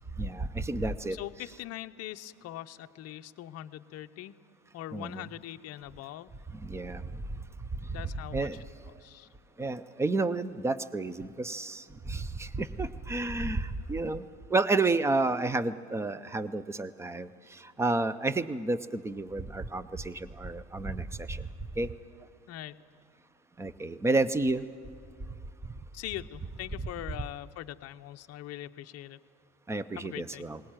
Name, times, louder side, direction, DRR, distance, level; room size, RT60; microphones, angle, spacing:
voice 1, 0.2-1.2 4.9-5.3 6.6-7.0 8.0-8.6 9.6-14.2 14.5-17.3 17.8-21.4 21.8-21.9 23.6-24.6 29.7-30.6, right 3 dB, 5° right, 16 dB, 0.4 m, -30 dB
voice 2, 1.1-4.4 4.7-6.3 7.9-8.5 9.0-9.3 22.5-22.8 25.9-29.2 29.9-30.4, left 13 dB, 35° left, 8 dB, 0.7 m, -42 dB
20.0 x 18.0 x 8.9 m, 2.2 s
supercardioid pair, 115°, 44 cm